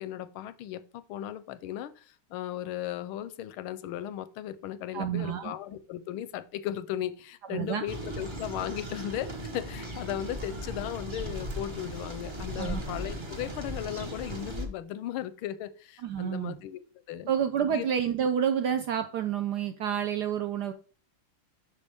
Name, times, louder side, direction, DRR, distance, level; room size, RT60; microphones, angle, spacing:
voice 1, 0.0-16.8 17.1-17.3 17.6-17.9, left 12 dB, 85° left, 1.4 m, -36 dB
voice 2, 4.9-5.5 7.5-7.8 12.6-13.0 16.0-16.6 17.3-20.7, right 8 dB, 75° right, 0.9 m, -29 dB
sound 1, 7.9-14.7, equal, 20° right, 0.8 m, -37 dB
8.3 x 6.1 x 3.5 m
omnidirectional pair, 2.3 m